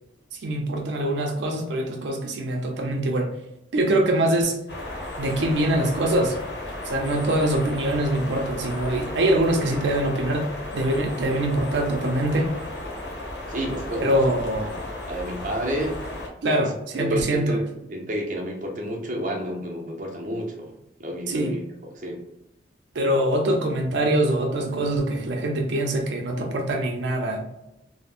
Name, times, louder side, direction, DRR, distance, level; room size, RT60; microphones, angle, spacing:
voice 1, 0.3-3.3 3.7-4.6 5.2-6.4 6.8-10.5 10.7-12.5 14.0-14.7 16.4-17.6 21.3-21.5 22.9-27.4, right 1 dB, 85° right, 1 dB, 0.5 m, -23 dB
sound 1, 4.7-16.3, left 1 dB, 80° left, 0.8 m, -34 dB
voice 2, 13.5-14.2 14.6-16.0 16.5-16.7 17.0-17.6 17.9-20.7 21.0-21.6 21.9-22.2, equal, 45° right, 0 dB, 0.6 m, -30 dB
3.3 x 2.0 x 2.5 m, 0.85 s
head